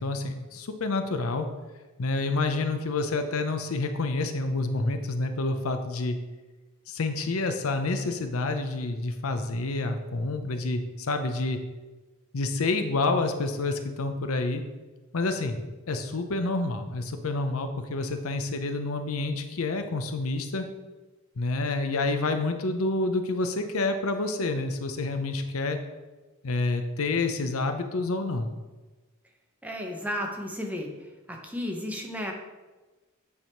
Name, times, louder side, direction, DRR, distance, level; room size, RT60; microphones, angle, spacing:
voice 1, 0.0-1.5 2.0-6.2 6.9-11.6 12.3-14.6 15.1-20.7 21.4-25.8 26.4-28.5, left 3 dB, 75° left, 7 dB, 0.7 m, -28 dB
voice 2, 29.6-30.9 31.3-32.3, left 1 dB, 5° right, 2 dB, 0.8 m, -33 dB
8.7 x 3.6 x 4.5 m, 1.2 s
head